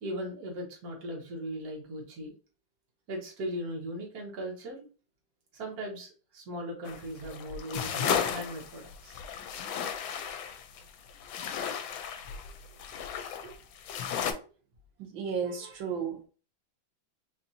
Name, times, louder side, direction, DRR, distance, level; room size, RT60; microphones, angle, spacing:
voice 1, 0.0-2.3 3.1-4.8 5.5-9.2 15.4-15.8, right 1 dB, 55° right, 1.6 m, -38 dB
sound 1, 6.9-14.3, left 8 dB, 85° left, 1.4 m, -34 dB
voice 2, 15.0-16.3, right 6 dB, 75° right, 1.6 m, -34 dB
4.2 x 2.9 x 2.6 m
omnidirectional pair, 2.1 m